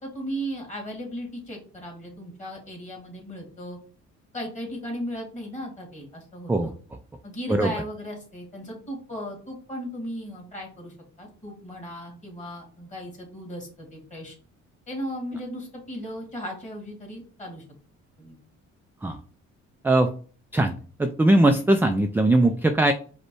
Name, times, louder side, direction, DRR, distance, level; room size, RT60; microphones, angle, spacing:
voice 1, 0.0-3.8 4.3-6.7 7.2-14.4 14.9-17.6 18.2-18.4, equal, 25° left, -1 dB, 2.3 m, -36 dB
voice 2, 21.0-22.9, right 1 dB, 5° right, 6 dB, 0.3 m, -20 dB
5.1 x 2.2 x 4.5 m, 0.41 s
cardioid pair, 90°, 30 cm